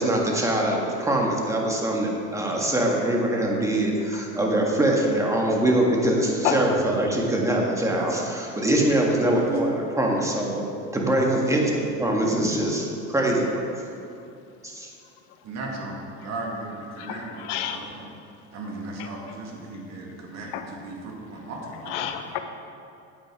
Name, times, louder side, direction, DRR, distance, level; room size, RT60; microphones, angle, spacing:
voice 1, 0.0-10.6 10.9-13.7 14.6-14.9, right 1 dB, 10° right, -1 dB, 1.7 m, -23 dB
voice 2, 9.3-9.8 15.4-18.1 18.5-22.1, right 2 dB, 50° right, -1 dB, 2.2 m, -35 dB
voice 3, 17.0-17.8 20.5-20.6 21.9-22.4, left 11 dB, 85° left, 7 dB, 0.9 m, -29 dB
9.3 x 8.3 x 4.7 m, 2.6 s
supercardioid pair, 110°, 35 cm